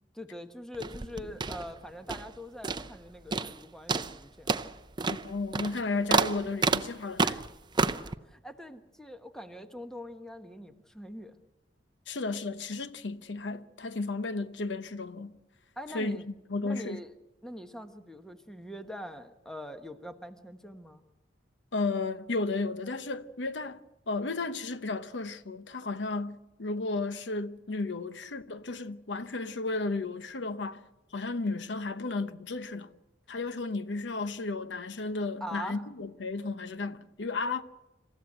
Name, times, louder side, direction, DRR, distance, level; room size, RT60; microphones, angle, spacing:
voice 1, 0.1-4.5 7.9-11.4 15.8-16.3 16.6-17.1 17.4-21.0 35.4-35.8, left 1 dB, 5° left, 1.2 m, -43 dB
sound 1, 0.7-2.4 2.6-3.0 3.3-3.6 3.9-8.1, right 4 dB, 25° right, 0.6 m, -30 dB
voice 2, 5.1-7.4 12.1-15.4 15.9-17.0 21.7-30.8 31.1-32.9 33.3-37.6, left 3 dB, 75° left, 0.9 m, -33 dB
27.0 x 14.5 x 7.8 m
head